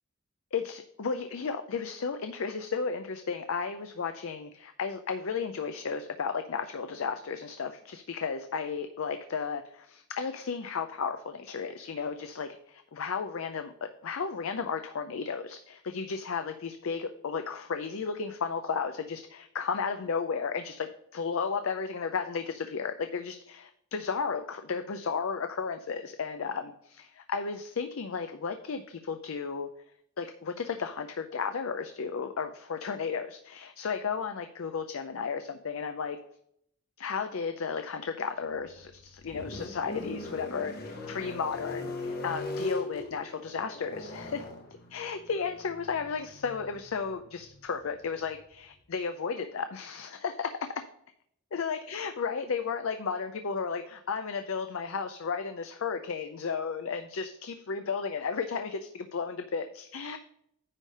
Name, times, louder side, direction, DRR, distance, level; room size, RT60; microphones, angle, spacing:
voice 1, 0.5-23.7 23.9-29.7 30.2-36.2 37.0-44.4 44.9-50.7 51.5-60.2, left 5 dB, 70° left, 8 dB, 0.5 m, -34 dB
sound 1, 38.5-48.7, left 2 dB, 45° left, 1.0 m, -40 dB
9.8 x 3.3 x 6.3 m, 0.72 s
head